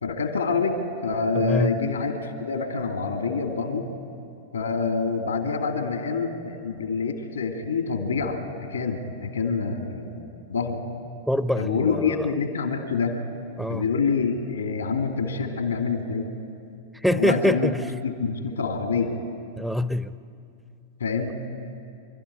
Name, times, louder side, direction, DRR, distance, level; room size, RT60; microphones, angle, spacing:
voice 1, 0.0-3.9 4.5-10.8 11.6-13.2 13.7-16.3 17.1-17.7 18.0-19.2 21.0-21.4, left 5 dB, 90° left, 5 dB, 2.4 m, -26 dB
voice 2, 1.3-1.8 11.3-12.3 13.6-13.9 16.9-17.9 19.6-20.1, equal, ahead, 14 dB, 0.7 m, -25 dB
27.5 x 12.5 x 9.9 m, 2.5 s
hypercardioid pair, 100°, 0 cm